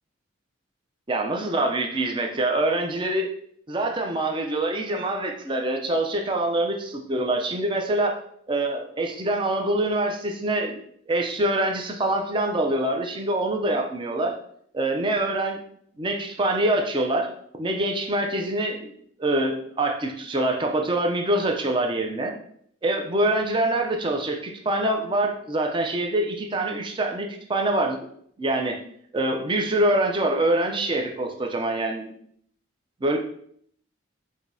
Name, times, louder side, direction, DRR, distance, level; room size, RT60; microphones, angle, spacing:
voice 1, 1.1-3.3 3.7-8.2 8.5-10.8 11.1-14.4 14.7-15.6 16.0-17.3 17.6-18.9 19.2-22.3 22.8-28.0 28.4-28.8 29.1-32.1 33.0-33.2, right 1 dB, 25° right, 2 dB, 0.4 m, -25 dB
4.9 x 2.7 x 2.6 m, 0.65 s
head